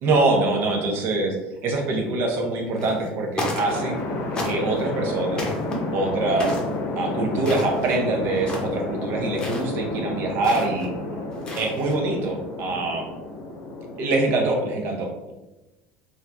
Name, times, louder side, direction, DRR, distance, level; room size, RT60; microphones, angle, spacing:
voice 1, 0.0-1.3 1.6-4.0 4.4-5.5 5.9-6.6 7.0-10.9 11.6-13.1 14.0-15.3, right 2 dB, 55° right, 1 dB, 0.7 m, -24 dB
sound 1, 2.7-3.1 3.3-4.0 4.3-4.8 5.3-5.8 6.4-6.7 7.4-8.0 8.3-8.8 9.3-9.7 10.4-10.8 11.3-11.9, left 1 dB, 20° left, 0.7 m, -31 dB
sound 2, 3.7-14.1, left 2 dB, 60° left, 0.7 m, -31 dB
2.7 x 2.3 x 3.3 m, 1.0 s
supercardioid pair, 125°, 4 cm